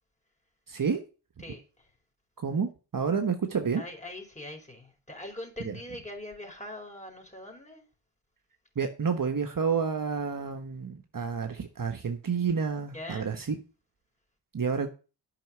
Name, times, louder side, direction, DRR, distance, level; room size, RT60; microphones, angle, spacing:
voice 1, 0.7-1.0 2.4-3.8 5.6-5.8 8.7-13.5 14.5-14.9, right 6 dB, 40° right, 1.3 m, -29 dB
voice 2, 3.7-7.8 12.9-13.3, left 1 dB, 15° left, 4.8 m, -42 dB
9.1 x 6.0 x 7.6 m
supercardioid pair, 55°, 49 cm